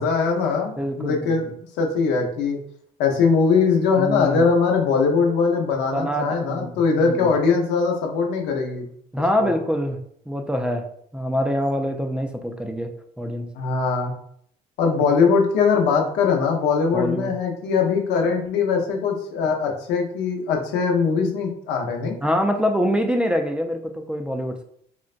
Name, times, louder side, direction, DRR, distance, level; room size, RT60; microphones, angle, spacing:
voice 1, 0.0-2.6 3.0-8.9 9.4-9.5 13.6-14.1 14.8-22.2, left 5 dB, 90° left, 2 dB, 0.7 m, -21 dB
voice 2, 0.8-1.3 4.0-4.5 5.9-7.3 9.1-10.0 10.3-10.9 11.1-12.9 13.2-13.5 16.9-17.3 22.2-24.6, equal, 5° right, 4 dB, 0.3 m, -25 dB
3.9 x 2.1 x 2.4 m, 0.66 s
cardioid pair, 110°, 17 cm